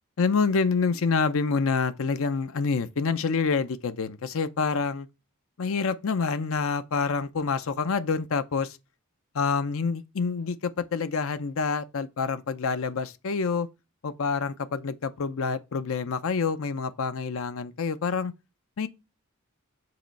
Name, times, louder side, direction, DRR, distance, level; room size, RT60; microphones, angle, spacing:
voice 1, 0.2-5.1 5.6-8.8 9.3-13.7 14.0-18.3 18.8-18.9, left 5 dB, 65° left, 0.6 m, -27 dB
7.7 x 3.0 x 5.6 m
head